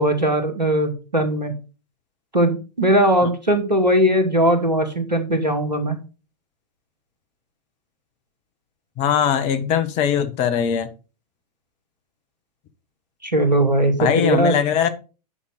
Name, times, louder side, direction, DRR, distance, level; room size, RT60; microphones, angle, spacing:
voice 1, 0.0-1.5 2.3-6.0 13.2-14.5, right 1 dB, 90° right, 2.2 m, -19 dB
voice 2, 9.0-10.9 14.0-14.9, left 8 dB, 35° left, 1.3 m, -20 dB
9.8 x 5.8 x 4.9 m
figure-of-eight pair, 105°, 21 cm